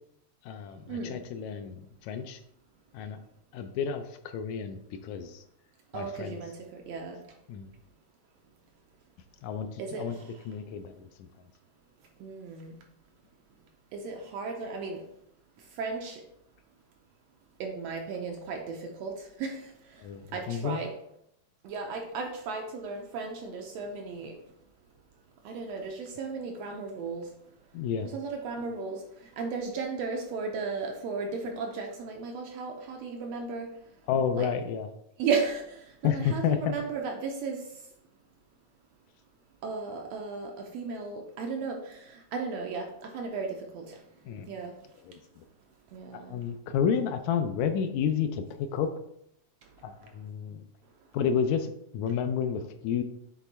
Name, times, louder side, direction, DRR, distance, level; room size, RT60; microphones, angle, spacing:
voice 1, 0.4-2.4 2.9-3.2 3.5-5.4 5.9-6.4 7.5-7.7 9.4-10.2 10.5-11.1 20.0-20.8 27.7-28.1 34.1-34.9 36.0-36.8 44.2-44.5 45.0-45.5 46.1-48.9 49.8-50.7 51.1-53.0, left 7 dB, 80° left, 8 dB, 1.8 m, -31 dB
voice 2, 5.9-7.2 9.8-10.1 12.2-12.7 13.9-15.0 15.8-16.2 17.6-19.1 19.4-19.6 20.3-20.9 21.6-24.4 25.4-27.2 28.0-29.0 29.4-33.7 34.3-34.5 35.2-35.8 36.0-37.6 39.6-42.0 42.3-44.0 44.5-44.7 45.9-46.4, right 4 dB, 75° right, 3 dB, 1.6 m, -35 dB
8.1 x 3.3 x 4.1 m, 0.75 s
omnidirectional pair, 3.4 m